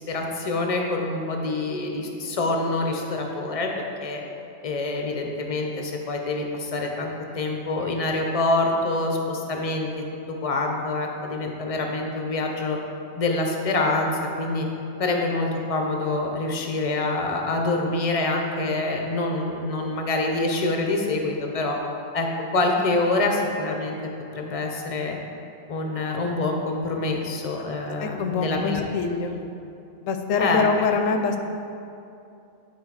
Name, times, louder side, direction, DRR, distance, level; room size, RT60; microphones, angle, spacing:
voice 1, 0.1-4.2 4.6-9.9 10.3-12.8 13.2-14.7 15.0-21.8 22.1-22.3 22.5-24.0 24.3-25.2 25.7-28.8 30.4-30.6, left 2 dB, 35° left, 2 dB, 0.6 m, -26 dB
voice 2, 27.7-29.4 30.0-31.4, left 5 dB, 75° left, 6 dB, 0.9 m, -25 dB
9.6 x 4.1 x 4.8 m, 2.7 s
omnidirectional pair, 1.4 m